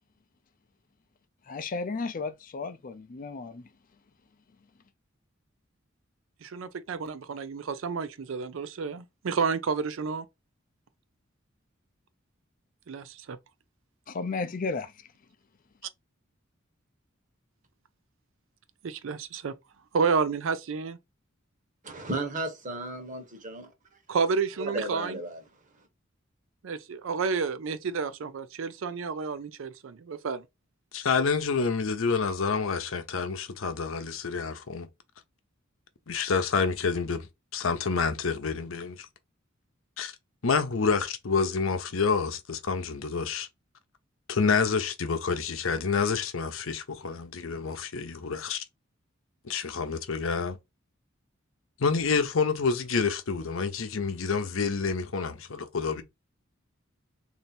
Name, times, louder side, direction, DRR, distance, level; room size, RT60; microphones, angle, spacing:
voice 1, 1.5-3.6 14.1-14.9, left 4 dB, 45° left, 0.5 m, -33 dB
voice 2, 6.4-10.3 12.9-13.4 18.8-19.6 19.9-21.0 24.1-25.2 26.6-30.4, right 5 dB, 70° right, 0.4 m, -30 dB
voice 3, 21.8-23.7 24.6-25.4, right 2 dB, 40° right, 1.0 m, -34 dB
voice 4, 30.9-34.9 36.1-37.3 37.5-39.1 40.0-40.1 40.4-43.5 44.3-48.6 49.4-50.6 51.8-56.0, left 5 dB, 85° left, 0.7 m, -28 dB
3.3 x 2.7 x 4.1 m
head